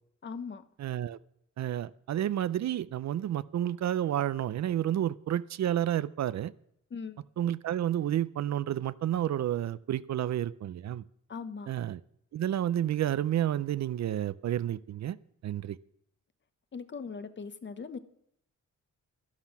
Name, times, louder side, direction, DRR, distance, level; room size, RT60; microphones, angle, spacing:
voice 1, 0.2-0.6 6.9-7.2 11.3-11.7 16.7-18.0, left 5 dB, 35° left, 11 dB, 0.9 m, -40 dB
voice 2, 0.8-1.2 1.6-6.5 7.4-11.0 11.7-12.0 12.3-15.2 15.4-15.8, right 11 dB, 60° right, 17 dB, 0.5 m, -30 dB
12.0 x 11.5 x 5.9 m, 0.72 s
wide cardioid pair, 140°, 31 cm